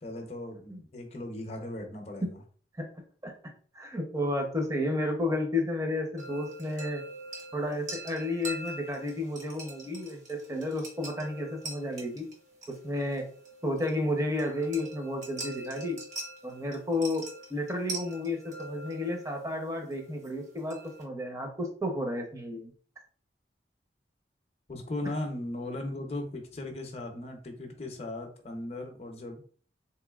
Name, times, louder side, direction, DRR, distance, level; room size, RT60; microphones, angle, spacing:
voice 1, 0.0-2.4 24.7-29.4, left 1 dB, 35° left, 3 dB, 0.6 m, -37 dB
voice 2, 3.7-7.0 7.5-12.3 12.7-13.2 13.6-16.0 16.4-17.2 17.5-22.7, left 1 dB, 15° right, 2 dB, 0.7 m, -32 dB
sound 1, 6.2-21.0, right 2 dB, 40° right, 0.9 m, -44 dB
3.7 x 3.0 x 2.3 m, 0.44 s
head